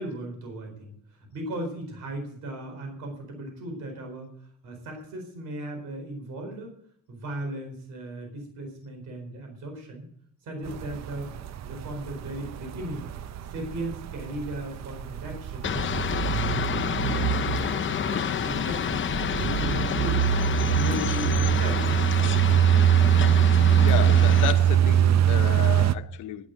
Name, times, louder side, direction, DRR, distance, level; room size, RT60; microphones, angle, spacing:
voice 1, 0.0-6.8 7.1-10.1 10.4-11.3 11.6-13.1 13.5-16.0 16.3-19.0 19.4-22.2, right 1 dB, 85° right, 4.4 m, -37 dB
sound 1, 10.7-26.0, right 10 dB, 65° right, 0.6 m, -23 dB
sound 2, 15.6-24.5, left 8 dB, 40° left, 0.7 m, -29 dB
voice 2, 23.7-26.5, left 12 dB, 80° left, 1.1 m, -32 dB
11.0 x 10.5 x 8.0 m
cardioid pair, 90°, 30 cm